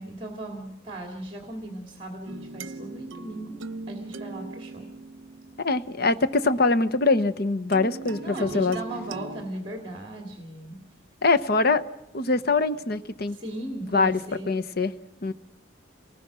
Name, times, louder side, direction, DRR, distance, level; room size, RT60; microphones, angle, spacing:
voice 1, 0.0-3.6 3.9-4.9 8.2-10.8 13.3-14.5, right 1 dB, 25° right, 3 dB, 2.6 m, -37 dB
sound 1, 2.3-6.5 7.7-9.5, right 3 dB, 80° right, 0.8 m, -40 dB
voice 2, 5.6-8.8 11.2-11.8 12.1-13.4 13.9-14.2 14.5-14.9 15.2-15.3, left 3 dB, 55° left, 11 dB, 0.9 m, -23 dB
27.5 x 19.5 x 6.2 m, 0.86 s
head